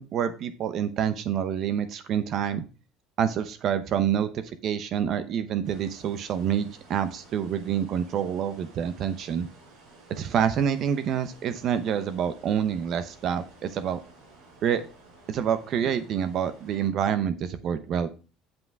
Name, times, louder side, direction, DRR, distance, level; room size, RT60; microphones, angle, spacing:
voice 1, 0.0-2.6 3.2-9.5 10.1-14.0 14.6-14.8 15.3-18.1, right 8 dB, 45° right, 11 dB, 0.8 m, -27 dB
sound 1, 5.6-16.9, right 3 dB, 65° right, 4.4 m, -53 dB
7.9 x 5.9 x 4.6 m, 0.34 s
cardioid pair, 150°, 0 cm